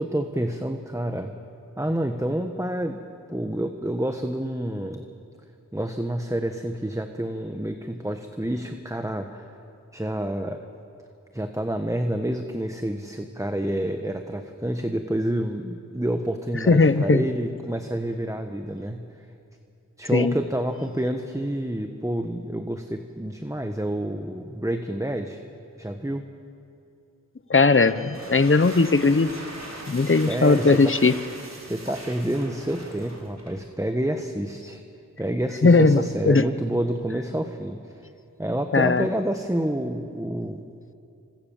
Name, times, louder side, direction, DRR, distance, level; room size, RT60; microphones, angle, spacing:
voice 1, 0.0-1.4 1.8-3.0 3.3-5.1 5.7-9.5 9.9-10.6 11.3-19.2 20.0-25.4 25.8-26.2 30.0-30.9 31.6-34.8 35.2-38.0 38.4-40.7, right 1 dB, 10° right, 6 dB, 1.4 m, -28 dB
voice 2, 16.7-17.2 20.1-20.4 27.5-29.3 29.9-31.1 35.6-36.4 38.7-39.0, left 3 dB, 40° left, 13 dB, 1.0 m, -18 dB
sound 1, 27.9-33.7, right 1 dB, 55° right, 5.0 m, -40 dB
27.5 x 26.0 x 7.3 m, 2.6 s
wide cardioid pair, 55°, 32 cm